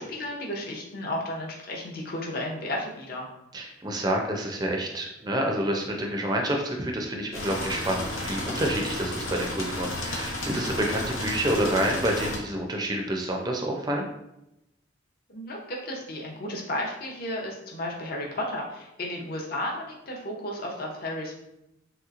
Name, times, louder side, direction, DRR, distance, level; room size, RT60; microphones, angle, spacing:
voice 1, 0.0-3.3 15.3-21.4, left 1 dB, 50° left, -1 dB, 0.6 m, -33 dB
voice 2, 3.5-14.1, right 1 dB, 20° right, 1 dB, 0.4 m, -28 dB
sound 1, 7.3-12.4, left 1 dB, 80° left, 0.7 m, -32 dB
3.2 x 2.9 x 2.4 m, 0.86 s
head